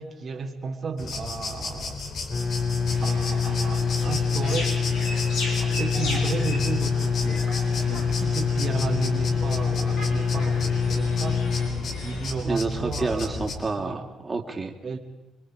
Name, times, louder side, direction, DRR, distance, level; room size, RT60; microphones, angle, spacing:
voice 1, 0.0-2.0 3.0-4.8 5.6-11.4 12.0-13.4 13.8-14.1 14.8-15.0, right 4 dB, 45° right, 2 dB, 2.2 m, -33 dB
sound 1, 1.0-13.6, left 3 dB, 60° left, 3.7 m, -34 dB
sound 2, 2.3-11.7, left 5 dB, 40° left, 4.9 m, -25 dB
sound 3, 2.9-12.3, left 2 dB, 85° left, 5.3 m, -37 dB
voice 2, 12.4-14.7, right 3 dB, 25° right, 2 dB, 2.9 m, -29 dB
27.0 x 23.5 x 4.9 m, 0.96 s
cardioid pair, 90°, 0 cm